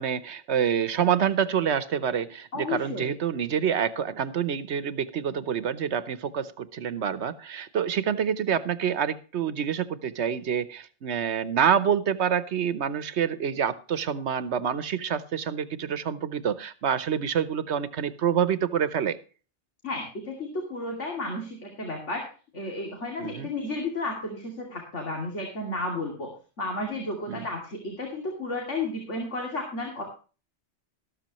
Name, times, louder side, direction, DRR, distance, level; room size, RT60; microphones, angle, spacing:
voice 1, 0.0-19.2 23.2-23.5 27.3-27.5, right 8 dB, 70° right, 15 dB, 1.1 m, -27 dB
voice 2, 2.5-3.1 19.8-22.2 22.5-26.3 26.6-30.0, left 2 dB, 80° left, 1 dB, 2.9 m, -32 dB
13.5 x 13.0 x 3.0 m, 0.35 s
omnidirectional pair, 1.2 m